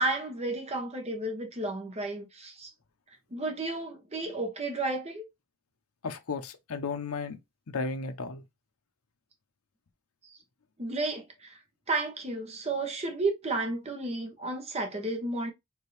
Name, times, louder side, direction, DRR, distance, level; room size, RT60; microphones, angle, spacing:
voice 1, 0.0-2.7 3.3-5.2 10.3-10.4 10.8-11.6 11.9-15.5, right 2 dB, 30° right, 1.0 m, -32 dB
voice 2, 6.0-7.4 7.7-8.5, left 4 dB, 75° left, 0.7 m, -34 dB
4.8 x 2.7 x 3.3 m
head